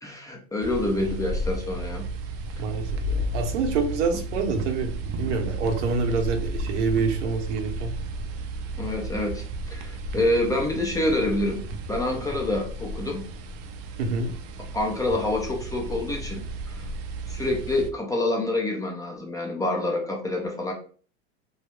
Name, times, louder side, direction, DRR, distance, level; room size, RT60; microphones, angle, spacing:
voice 1, 0.0-2.0 8.8-11.6 11.9-13.2 14.7-16.8 17.3-20.7, left 2 dB, 10° left, 0 dB, 0.5 m, -27 dB
sound 1, 0.6-17.9, right 2 dB, 45° right, 0.5 m, -33 dB
voice 2, 2.6-7.9 14.0-14.3, right 4 dB, 80° right, 4 dB, 0.8 m, -27 dB
2.3 x 2.0 x 3.0 m, 0.42 s
supercardioid pair, 110°, 35 cm